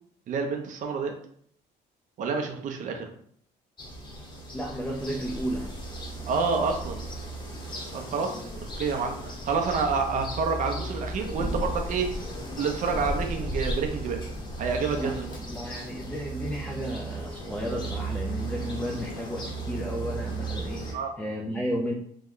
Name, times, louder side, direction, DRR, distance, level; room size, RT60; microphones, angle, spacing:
voice 1, 0.3-1.1 2.2-3.1 6.2-7.0 7.9-8.4 8.8-12.1 12.6-14.2 14.6-15.3 20.9-21.1, right 5 dB, 50° right, 3 dB, 0.6 m, -28 dB
sound 1, 3.8-20.9, right 1 dB, 25° left, 0.9 m, -35 dB
voice 2, 4.5-5.7 15.0-15.2 15.5-21.9, equal, 5° left, -1 dB, 0.4 m, -33 dB
3.0 x 2.1 x 3.7 m, 0.63 s
cardioid pair, 110°, 17 cm